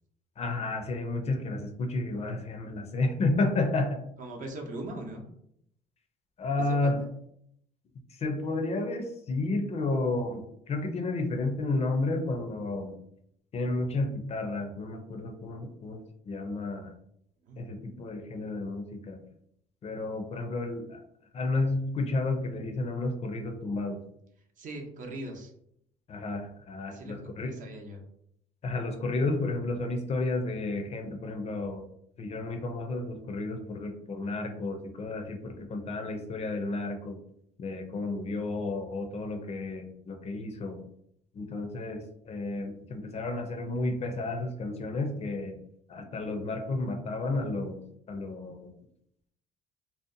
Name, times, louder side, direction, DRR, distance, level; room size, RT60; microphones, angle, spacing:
voice 1, 0.4-4.0 6.4-7.0 8.1-13.0 13.5-16.0 16.3-16.9 17.6-19.2 19.8-21.0 21.3-24.0 26.1-27.6 28.6-31.9 32.2-37.2 37.6-40.8 41.3-45.6 45.9-47.8 48.1-48.7, left 2 dB, 40° left, 5 dB, 0.4 m, -32 dB
voice 2, 4.2-5.2 6.7-7.1 17.5-17.6 24.6-25.5 26.9-27.2 27.4-28.0, right 1 dB, 50° right, 2 dB, 0.6 m, -40 dB
2.7 x 2.0 x 2.5 m, 0.72 s
cardioid pair, 110°, 17 cm